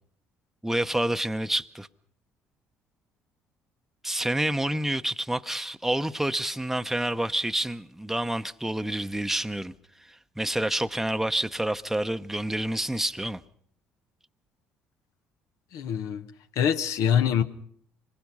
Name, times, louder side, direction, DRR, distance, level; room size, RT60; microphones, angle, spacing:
voice 1, 0.6-1.9 4.0-9.7 10.4-13.4, right 1 dB, 5° right, 0.8 m, -28 dB
voice 2, 15.7-16.3 16.6-17.4, left 8 dB, 70° left, 1.1 m, -24 dB
26.0 x 20.5 x 5.5 m
hypercardioid pair, 60°, 6 cm